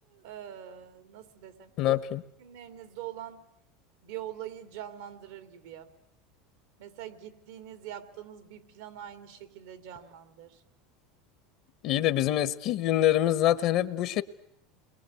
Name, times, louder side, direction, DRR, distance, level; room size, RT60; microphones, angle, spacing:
voice 1, 0.1-1.9 2.4-3.5 4.0-5.9 6.8-10.6, right 11 dB, 80° right, 9 dB, 2.6 m, -43 dB
voice 2, 1.8-2.2 11.8-14.2, left 13 dB, 55° left, 14 dB, 1.2 m, -25 dB
28.5 x 22.0 x 8.4 m, 0.76 s
supercardioid pair, 115°, 0 cm